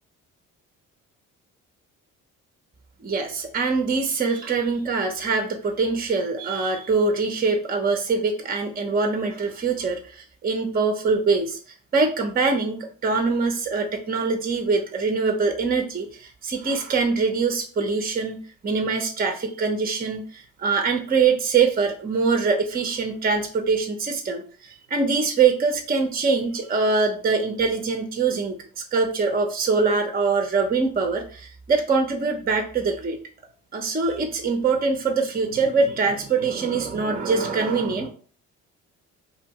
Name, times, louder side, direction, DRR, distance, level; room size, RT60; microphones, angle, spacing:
voice 1, 3.0-10.0 10.4-11.6 11.9-33.2 33.7-38.1, right 4 dB, 25° right, 5 dB, 0.7 m, -23 dB
2.8 x 2.6 x 4.1 m, 0.43 s
hypercardioid pair, 50°, 39 cm